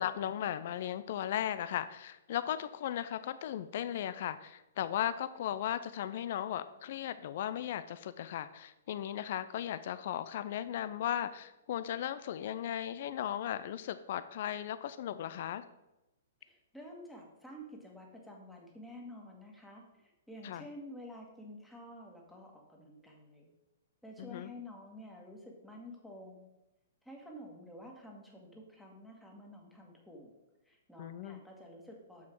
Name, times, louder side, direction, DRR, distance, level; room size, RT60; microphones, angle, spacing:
voice 1, 0.0-15.6 20.4-20.6 24.2-24.5 31.0-31.4, left 11 dB, 55° left, 13 dB, 0.4 m, -36 dB
voice 2, 16.4-23.5 24.0-26.5 27.0-30.3 30.6-32.3, left 1 dB, 5° left, -1 dB, 1.8 m, -50 dB
7.1 x 5.8 x 4.6 m, 0.95 s
hypercardioid pair, 120°, 0 cm